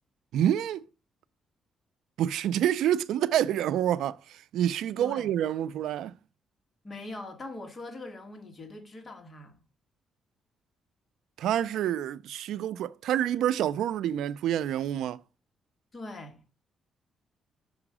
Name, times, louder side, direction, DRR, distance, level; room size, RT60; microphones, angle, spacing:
voice 1, 0.3-0.8 2.2-6.1 11.4-15.2, right 11 dB, 85° right, 0.3 m, -27 dB
voice 2, 5.0-5.3 6.8-9.6 15.9-16.4, left 2 dB, 30° left, 1.6 m, -42 dB
6.1 x 4.9 x 4.8 m
cardioid pair, 115°, 0 cm